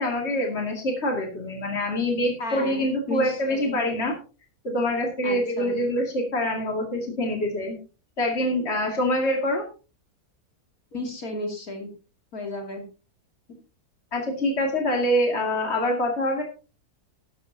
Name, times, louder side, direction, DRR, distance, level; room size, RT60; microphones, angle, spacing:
voice 1, 0.0-4.2 4.6-7.8 8.2-9.6 14.1-16.4, left 1 dB, 40° left, 1 dB, 2.7 m, -25 dB
voice 2, 2.4-3.8 5.2-5.8 10.9-11.9 12.3-12.8, left 1 dB, 60° left, 2 dB, 3.1 m, -33 dB
13.0 x 12.5 x 2.8 m, 0.34 s
omnidirectional pair, 1.7 m